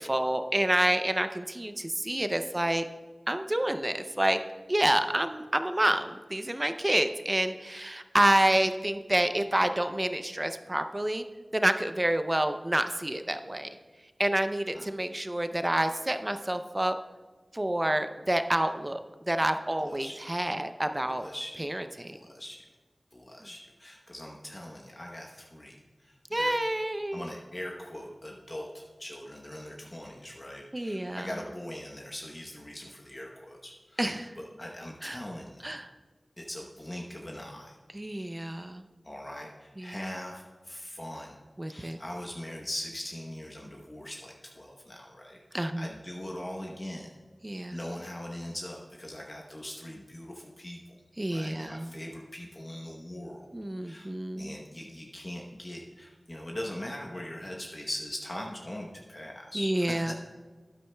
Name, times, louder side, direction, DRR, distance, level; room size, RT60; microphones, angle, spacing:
voice 1, 0.0-2.9 3.3-4.4 4.7-11.2 11.5-13.7 14.2-17.0 17.5-19.0 19.3-21.3 21.6-22.1 26.3-27.2 30.7-31.3 34.0-34.3 35.0-35.2 35.6-35.9 37.9-38.8 39.8-40.1 41.6-42.0 45.5-45.9 47.4-47.8 51.2-51.9 53.5-54.6 59.5-60.1, right 1 dB, 25° right, 8 dB, 0.5 m, -28 dB
voice 2, 19.8-20.2 21.0-21.7 22.1-22.6 23.1-25.8 26.0-26.1 26.4-26.6 27.1-34.1 34.4-35.7 36.4-37.7 39.0-41.3 41.7-47.1 47.7-50.8 51.3-53.5 53.8-54.1 54.4-60.1, left 1 dB, 35° left, -1 dB, 0.9 m, -41 dB
12.5 x 9.8 x 2.2 m, 1.3 s
wide cardioid pair, 55°, 0 cm